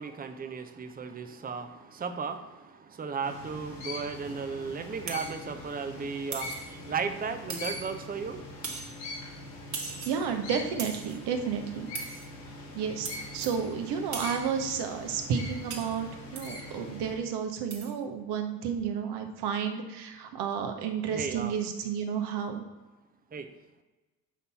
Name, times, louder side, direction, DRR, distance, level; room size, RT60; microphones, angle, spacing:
voice 1, 0.0-8.4 21.1-21.5 23.3-23.5, right 5 dB, 20° right, 8 dB, 0.7 m, -35 dB
sound 1, 3.2-17.1, left 2 dB, 75° left, 2.2 m, -42 dB
sound 2, 5.1-5.4 6.3-6.7 7.5-8.0 8.6-9.0 9.7-10.3 10.8-11.2 11.9-12.3 13.0-13.6 14.1-14.5 15.7-16.0 16.4-16.7 17.7-17.9, right 4 dB, 35° right, 1.5 m, -39 dB
voice 2, 10.0-11.9 12.7-13.1 13.3-22.6, right 7 dB, 55° right, 6 dB, 1.1 m, -31 dB
7.4 x 5.4 x 4.2 m, 1.2 s
figure-of-eight pair, 50°, 48 cm